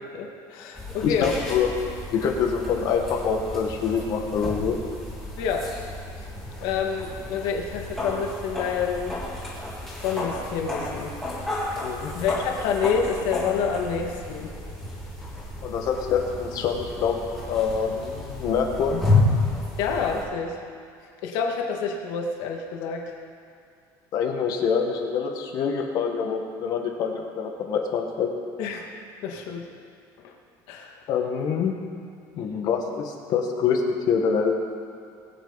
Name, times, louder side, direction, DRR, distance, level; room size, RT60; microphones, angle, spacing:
voice 1, 0.1-1.3 5.4-5.7 6.2-6.3 6.6-9.2 10.0-11.1 11.7-14.5 19.8-20.6 21.2-23.1 28.6-28.9 29.2-29.7 30.2-30.3 30.7-31.0, left 6 dB, 70° left, 1 dB, 2.0 m, -28 dB
sound 1, 0.7-20.2, left 2 dB, 5° left, 3.1 m, -31 dB
voice 2, 1.0-1.7 2.1-4.8 11.8-12.1 15.6-19.0 24.1-28.3 31.1-31.7 32.3-33.8 34.1-34.6, left 6 dB, 45° left, 3 dB, 1.6 m, -25 dB
21.5 x 9.0 x 4.1 m, 2.3 s
cardioid pair, 170°, 9 cm